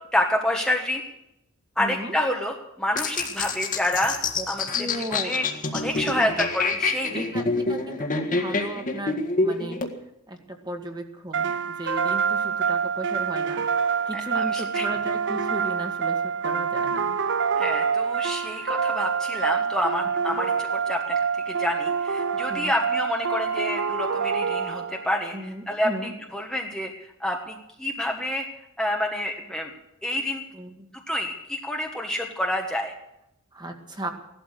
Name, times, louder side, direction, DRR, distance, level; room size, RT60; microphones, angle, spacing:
voice 1, 0.1-1.0 1.8-4.2 4.5-4.7 5.1-5.5 5.7-7.2 14.1-14.9 17.6-26.9 27.2-28.5 28.8-29.7 30.0-30.4 31.1-32.9, left 1 dB, 5° left, 0 dB, 1.3 m, -28 dB
voice 2, 1.8-2.2 4.4-4.5 4.7-5.3 6.0-6.3 7.1-9.8 10.3-13.7 14.1-17.2 20.3-20.4 22.5-22.7 25.3-26.1 30.5-30.9 33.5-34.1, right 1 dB, 20° right, 4 dB, 1.8 m, -36 dB
sound 1, 3.0-9.9, left 3 dB, 40° left, 1.7 m, -27 dB
sound 2, 11.3-25.2, right 6 dB, 55° right, 0.8 m, -26 dB
17.0 x 12.5 x 6.7 m, 0.83 s
head